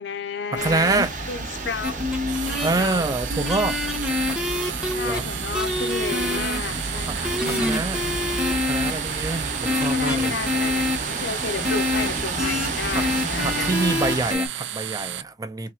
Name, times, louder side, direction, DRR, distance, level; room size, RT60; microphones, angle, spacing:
voice 1, 0.0-2.0 2.5-3.1 4.9-7.3 9.6-13.7, left 5 dB, 70° left, 0.6 m, -32 dB
voice 2, 0.5-1.1 2.6-3.8 4.3-4.4 5.0-5.2 7.1-7.2 7.5-8.0 8.7-10.3 12.9-13.1 13.4-15.7, right 3 dB, 20° right, 0.4 m, -26 dB
sound 1, 0.6-14.3, right 2 dB, 45° right, 0.9 m, -31 dB
sound 2, 1.8-2.7 3.3-5.2 5.5-6.6 7.2-8.9 9.7-11.0 11.6-12.1 12.4-12.7 12.9-14.5, left 2 dB, 5° right, 0.8 m, -26 dB
sound 3, 2.3-15.2, right 11 dB, 80° right, 0.4 m, -33 dB
3.5 x 2.9 x 2.9 m
head